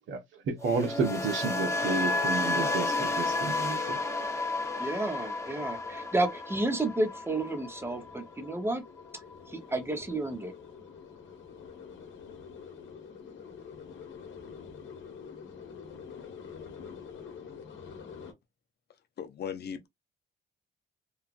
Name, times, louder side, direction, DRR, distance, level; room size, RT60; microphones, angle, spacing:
voice 1, 0.1-4.0, right 4 dB, 75° right, 1.1 m, -31 dB
sound 1, 0.6-8.7 9.0-9.3, left 2 dB, 15° left, 0.9 m, -32 dB
sound 2, 4.5-18.3, left 6 dB, 75° left, 0.9 m, -48 dB
voice 2, 4.8-8.8 9.5-10.5, right 2 dB, 10° right, 0.9 m, -31 dB
voice 3, 19.2-19.9, left 7 dB, 55° left, 0.7 m, -37 dB
3.1 x 2.4 x 2.5 m
cardioid pair, 90°, 20 cm